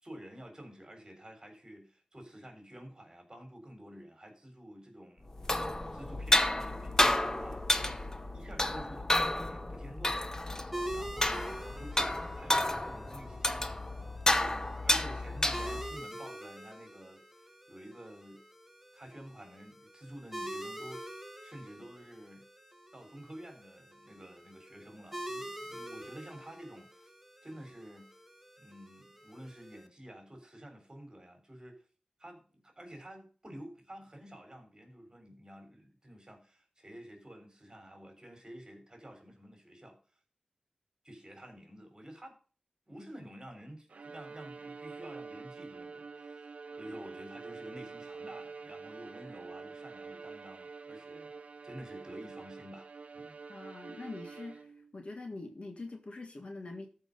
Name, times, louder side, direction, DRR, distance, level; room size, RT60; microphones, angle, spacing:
voice 1, 0.0-5.3 5.9-8.0 8.3-10.4 10.9-13.8 14.4-18.4 18.9-21.0 21.4-22.5 22.9-27.1 27.4-28.1 28.6-31.8 32.2-40.0 41.0-42.3 42.9-51.3 51.6-52.9 53.1-53.4, equal, 30° right, 3.6 m, -50 dB
sound 1, 5.3-16.0, left 1 dB, 25° left, 0.9 m, -31 dB
sound 2, 10.7-29.9, right 1 dB, 5° right, 1.3 m, -46 dB
Bowed string instrument, 43.9-54.9, right 4 dB, 70° right, 0.7 m, -47 dB
voice 2, 53.5-54.7 54.9-56.9, left 2 dB, 55° left, 1.9 m, -43 dB
14.0 x 4.9 x 5.3 m
wide cardioid pair, 75°, 2 cm